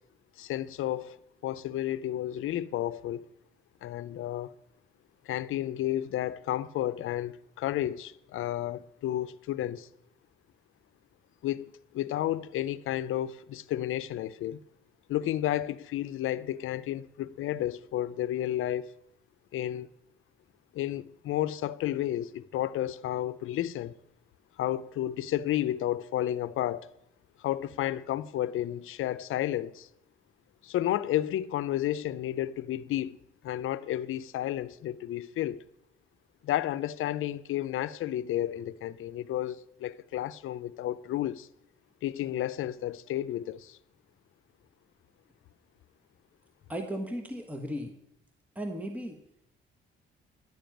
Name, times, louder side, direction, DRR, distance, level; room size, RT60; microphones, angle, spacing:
voice 1, 0.4-1.2 1.4-3.3 3.8-4.6 5.3-9.9 11.4-14.6 15.1-18.9 19.5-19.9 20.7-23.9 24.6-26.9 27.4-29.9 30.6-33.2 33.4-35.6 36.4-41.5 42.0-43.8, left 12 dB, 75° left, 0.6 m, -32 dB
voice 2, 46.7-47.9 48.5-49.2, equal, 5° right, 1.3 m, -35 dB
11.0 x 6.9 x 9.1 m
cardioid pair, 100°, 21 cm